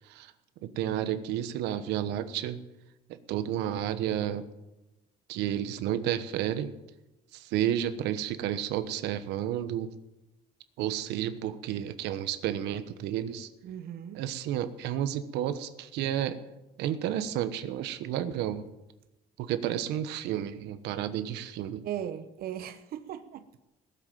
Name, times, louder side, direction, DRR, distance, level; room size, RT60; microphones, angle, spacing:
voice 1, 0.6-2.6 3.1-4.4 5.3-6.7 7.3-9.9 10.8-13.5 14.1-16.4 16.8-18.7 19.4-21.8, right 11 dB, 90° right, 1.1 m, -31 dB
voice 2, 13.6-14.2 21.8-23.6, right 10 dB, 65° right, 1.0 m, -38 dB
18.0 x 7.8 x 9.2 m
cardioid pair, 110°, 17 cm